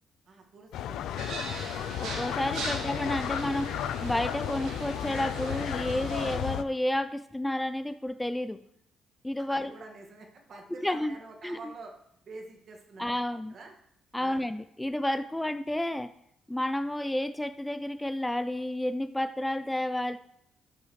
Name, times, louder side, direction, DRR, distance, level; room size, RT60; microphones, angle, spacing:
voice 1, 0.3-1.4 1.9-2.0 2.7-2.8 9.5-11.9 12.3-13.7 14.2-14.4, right 3 dB, 55° right, 2 dB, 1.8 m, -47 dB
sound 1, 0.7-6.6, left 11 dB, 85° left, 0.4 m, -34 dB
sound 2, 1.2-6.4, right 3 dB, 85° right, 1.3 m, -40 dB
voice 2, 2.0-8.6 9.2-9.7 10.8-11.2 11.4-11.6 13.0-13.5 14.1-16.1 16.5-20.2, left 1 dB, 10° left, 11 dB, 0.4 m, -31 dB
13.0 x 5.5 x 3.2 m, 0.73 s
cardioid pair, 90°, 0 cm